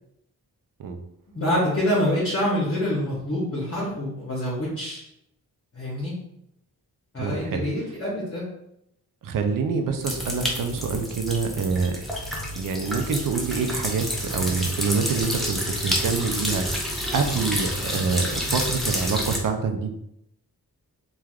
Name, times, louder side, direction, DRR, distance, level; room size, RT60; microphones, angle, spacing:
voice 1, 1.3-5.0 5.7-6.1 7.1-8.5, left 1 dB, 40° left, -7 dB, 0.8 m, -26 dB
voice 2, 7.2-7.7 9.2-12.1 12.6-14.1 14.3-16.8 17.1-19.9, right 5 dB, 60° right, 5 dB, 0.5 m, -26 dB
sound 1, 10.0-19.4, equal, ahead, 0.5 m, -29 dB
3.2 x 2.3 x 2.3 m, 0.78 s
wide cardioid pair, 110°, 37 cm